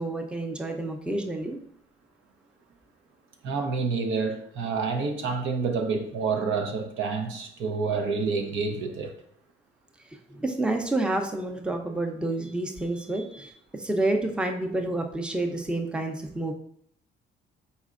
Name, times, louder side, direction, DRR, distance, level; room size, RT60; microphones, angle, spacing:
voice 1, 0.0-1.6 10.0-16.5, right 2 dB, 5° right, 0.6 m, -29 dB
voice 2, 3.4-9.1, right 4 dB, 80° right, 0.7 m, -28 dB
4.3 x 4.2 x 2.5 m
cardioid pair, 90°, 20 cm